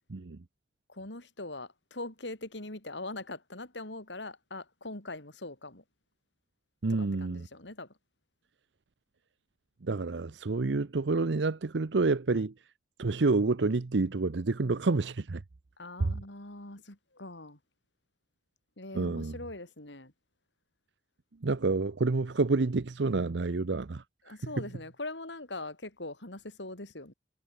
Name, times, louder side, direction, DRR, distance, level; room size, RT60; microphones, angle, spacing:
voice 1, 0.9-5.8 6.9-7.9 12.3-12.4 15.8-17.6 18.8-20.1 24.2-27.1, left 2 dB, 85° left, 4.9 m, -42 dB
voice 2, 6.8-7.5 9.8-12.5 13.0-15.4 16.0-16.1 18.9-19.4 21.4-24.4, right 3 dB, 80° right, 0.7 m, -28 dB
head